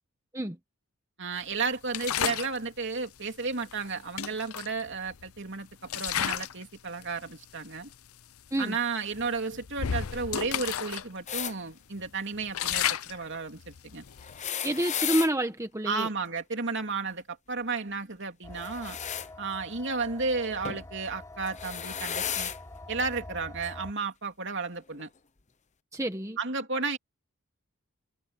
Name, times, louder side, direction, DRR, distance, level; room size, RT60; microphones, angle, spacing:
voice 1, 1.2-5.7 5.9-7.9 8.6-14.0 15.9-19.0 19.4-22.5 22.9-25.1 26.4-27.0, right 4 dB, 55° right, 3.0 m, -33 dB
sound 1, 1.9-2.6 3.7-3.8 4.2-5.4 5.8-6.6 7.0-7.3 7.9-8.0 8.4-8.6 9.1-11.1 11.4-11.5 12.0-14.5, left 9 dB, 75° left, 0.7 m, -32 dB
sound 2, 11.3-11.5 14.2-15.3 18.5-19.3 20.6-20.9 21.5-22.6 23.6-23.7 24.9-25.0, left 9 dB, 30° left, 0.9 m, -34 dB
voice 2, 14.6-16.1 25.9-26.4, right 1 dB, 15° right, 1.3 m, -28 dB
sound 3, 18.4-23.9, left 2 dB, 15° left, 4.1 m, -45 dB
head